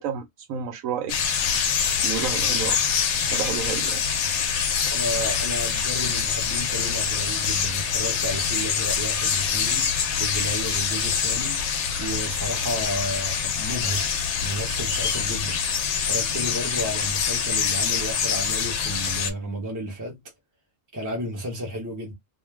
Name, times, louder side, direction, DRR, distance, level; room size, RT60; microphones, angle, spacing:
voice 1, 0.0-1.4 2.0-2.8 3.3-4.0, right 7 dB, 90° right, 1.1 m, -31 dB
sound 1, 1.1-19.3, left 7 dB, 70° left, 0.8 m, -25 dB
voice 2, 4.9-9.9 10.2-11.6 12.0-15.6 16.1-20.2 20.9-22.1, equal, 20° right, 0.5 m, -32 dB
2.4 x 2.3 x 3.2 m
omnidirectional pair, 1.4 m